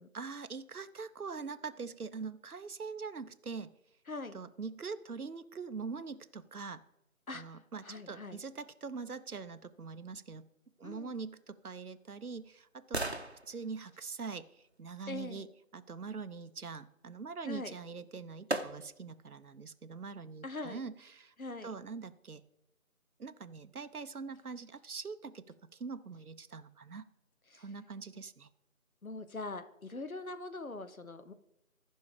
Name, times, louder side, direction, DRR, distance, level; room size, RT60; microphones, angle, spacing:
voice 1, 0.1-3.7 4.3-6.8 7.3-10.5 10.8-13.2 13.5-14.5 14.8-15.5 15.7-22.5 23.2-27.0 27.5-28.5, right 5 dB, 85° right, 13 dB, 0.8 m, -43 dB
voice 2, 4.1-4.4 7.3-8.4 10.8-11.2 15.1-15.5 17.4-17.8 20.4-20.8 21.4-21.7 27.5-27.7 29.0-31.3, left 2 dB, 75° left, 11 dB, 1.0 m, -42 dB
sound 1, 11.4-15.5 17.6-17.7 18.5-19.2 19.7-19.8, right 2 dB, 45° right, 0.8 m, -41 dB
14.0 x 5.5 x 4.9 m, 0.84 s
figure-of-eight pair, 170°, 43 cm